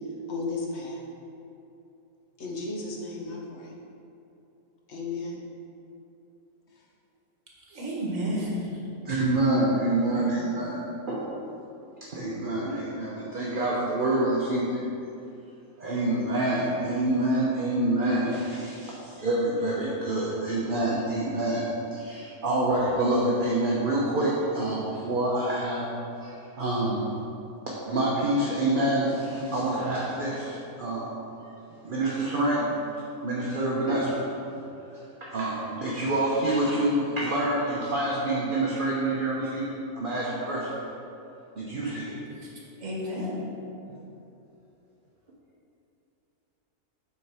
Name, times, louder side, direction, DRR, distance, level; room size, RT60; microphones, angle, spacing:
voice 1, 0.3-1.1 2.4-3.8 4.9-5.4, left 3 dB, 50° left, 1.2 m, -34 dB
voice 2, 7.7-8.6 42.4-42.5 42.8-43.4, equal, 60° right, 1.9 m, -31 dB
voice 3, 9.0-10.8 11.1-11.2 12.0-14.8 15.8-25.9 26.2-27.1 27.7-31.1 31.8-32.7 33.2-34.3 34.5-34.6 35.2-40.8 41.6-42.2, right 1 dB, 40° right, 1.0 m, -27 dB
8.3 x 4.6 x 4.8 m
omnidirectional pair, 1.6 m